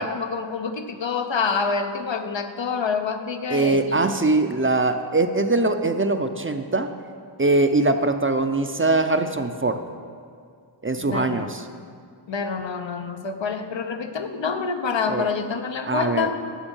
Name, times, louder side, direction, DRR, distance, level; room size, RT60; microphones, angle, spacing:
voice 1, 0.0-4.0 11.0-11.5 12.3-16.4, left 5 dB, 80° left, 7 dB, 0.7 m, -27 dB
voice 2, 3.5-6.9 7.4-9.8 10.8-11.7 15.1-15.3 15.9-16.3, right 2 dB, 30° right, 8 dB, 0.5 m, -22 dB
10.0 x 6.2 x 5.4 m, 2.2 s
wide cardioid pair, 45°, 44 cm